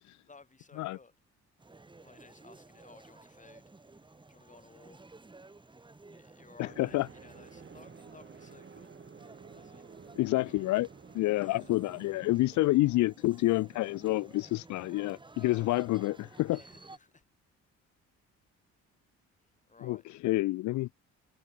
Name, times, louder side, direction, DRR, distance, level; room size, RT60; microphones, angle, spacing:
voice 1, 0.3-1.1 2.0-3.6 4.3-5.0 6.1-9.0 9.5-9.9 11.3-11.8 16.4-17.2 19.7-20.1, left 4 dB, 25° left, 4.0 m, -57 dB
sound 1, 1.6-17.0, right 3 dB, 15° right, 1.5 m, -54 dB
voice 2, 6.6-7.1 10.2-10.9 11.1-16.6 19.8-20.0 20.2-21.1, left 18 dB, 70° left, 0.4 m, -28 dB
sound 2, 6.6-12.7, right 6 dB, 40° right, 5.3 m, -52 dB
cardioid pair, 90°, 30 cm